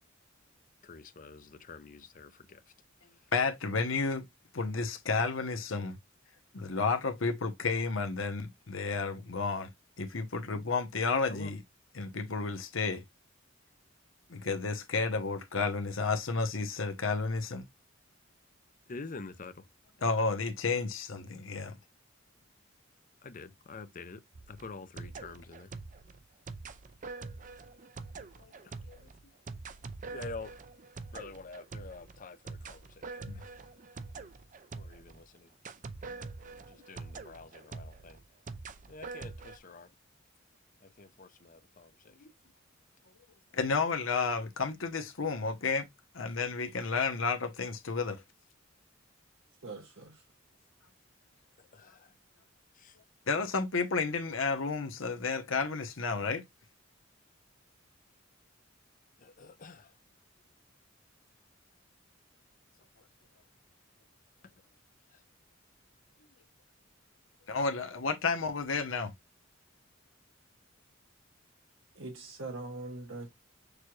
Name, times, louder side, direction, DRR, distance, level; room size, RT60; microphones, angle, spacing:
voice 1, 0.8-2.6 11.3-11.5 18.9-19.7 23.2-24.2 24.5-25.7 28.6-28.8 30.1-30.5 31.1-33.4 34.8-35.5 36.7-38.2 38.9-39.9 40.8-42.2 51.6-52.1 52.7-53.0 59.2-59.9 65.1-65.2, left 3 dB, 45° left, 0.6 m, -47 dB
voice 2, 3.3-4.2 4.5-6.0 6.5-9.7 10.0-11.6 11.9-13.0 14.3-17.7 20.0-21.8 28.4-28.5 28.9-29.0 33.3-33.4 43.5-45.9 46.1-48.2 53.3-56.4 67.5-69.1, left 4 dB, 85° left, 1.0 m, -31 dB
sound 1, 24.3-35.2 35.6-39.6, right 4 dB, 40° right, 0.5 m, -45 dB
voice 3, 49.6-50.2 71.9-73.3, right 2 dB, 75° right, 1.1 m, -42 dB
6.5 x 2.3 x 3.1 m
head